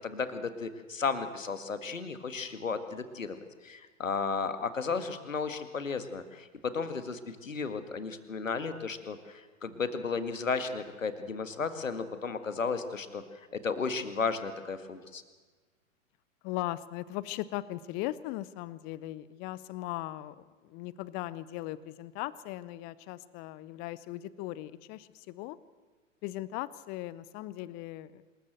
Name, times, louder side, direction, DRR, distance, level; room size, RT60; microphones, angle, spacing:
voice 1, 0.0-3.4 3.6-15.2, left 5 dB, 75° left, 10 dB, 1.9 m, -34 dB
voice 2, 16.4-25.6 26.2-28.2, left 16 dB, 25° left, 19 dB, 0.6 m, -38 dB
26.0 x 14.0 x 7.8 m, 1.4 s
figure-of-eight pair, 100°, 39 cm